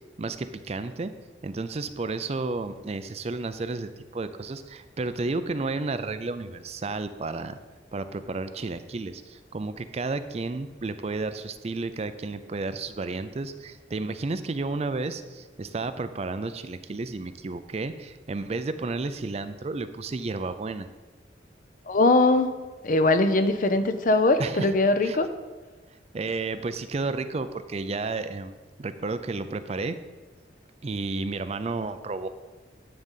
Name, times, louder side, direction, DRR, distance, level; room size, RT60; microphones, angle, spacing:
voice 1, 0.2-1.1 1.4-7.6 7.9-20.9 24.4-24.7 25.0-25.2 26.1-28.5 28.8-30.0 30.8-32.3, right 3 dB, 35° right, 11 dB, 0.4 m, -32 dB
voice 2, 21.9-22.5 22.8-25.3, left 2 dB, 50° left, 9 dB, 0.6 m, -21 dB
11.0 x 4.0 x 7.3 m, 1.3 s
head